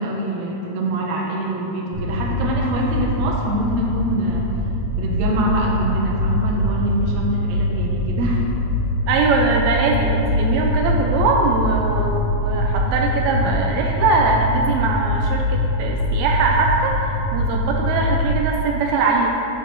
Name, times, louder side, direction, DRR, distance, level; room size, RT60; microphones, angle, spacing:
voice 1, 0.0-4.4 5.0-8.5, right 1 dB, 65° right, -2 dB, 1.9 m, -24 dB
sound 1, 1.9-18.3, left 1 dB, 25° right, 0.5 m, -23 dB
voice 2, 9.1-19.3, right 4 dB, 85° right, 1 dB, 2.4 m, -21 dB
8.1 x 6.0 x 6.7 m, 3.0 s
omnidirectional pair, 4.6 m